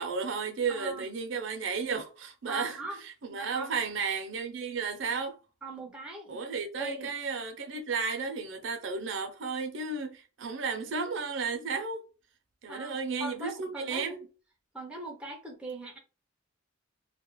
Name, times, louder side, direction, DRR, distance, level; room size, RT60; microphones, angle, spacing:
voice 1, 0.0-2.8 3.2-5.4 6.3-12.0 12.6-14.2, right 5 dB, 60° right, 0.5 m, -33 dB
voice 2, 0.7-1.1 2.5-3.0 3.3-3.7 5.6-6.4 6.8-7.1 12.7-14.3 14.7-16.0, right 2 dB, 5° right, 0.4 m, -40 dB
2.3 x 2.1 x 2.9 m
head